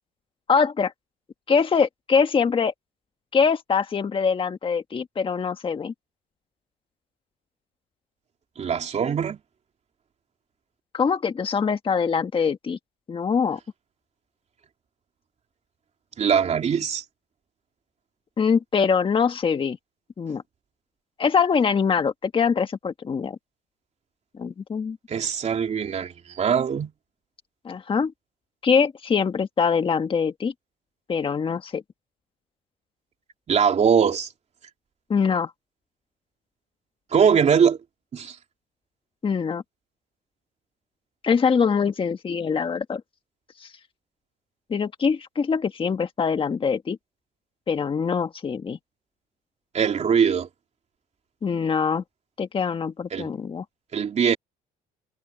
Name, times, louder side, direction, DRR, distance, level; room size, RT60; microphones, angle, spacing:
voice 1, 0.5-0.9 1.5-2.7 3.3-5.9 10.9-12.8 13.1-13.6 18.4-19.8 20.2-20.4 21.2-23.4 24.3-25.0 27.6-28.1 28.6-30.5 31.1-31.8 35.1-35.5 39.2-39.6 41.2-43.0 43.6-43.7 44.7-47.0 47.7-48.8 51.4-52.0 52.4-53.6, left 6 dB, 30° left, 1.7 m, -23 dB
voice 2, 8.6-9.4 16.2-17.0 25.1-26.9 33.5-34.3 37.1-37.8 38.1-38.4 49.7-50.5 53.1-53.3 53.9-54.4, right 7 dB, 40° right, 3.3 m, -21 dB
cardioid pair, 110°, 17 cm